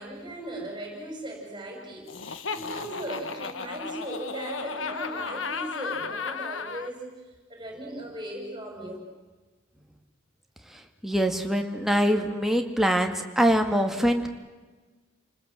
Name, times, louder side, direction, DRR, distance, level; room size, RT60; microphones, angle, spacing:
voice 1, 0.0-7.2 7.5-9.0, right 1 dB, 25° right, 1 dB, 6.3 m, -38 dB
Laughter, 2.1-6.9, left 5 dB, 80° left, 1.4 m, -34 dB
voice 2, 11.0-14.3, equal, ahead, 4 dB, 2.1 m, -23 dB
29.5 x 20.0 x 7.8 m, 1.3 s
head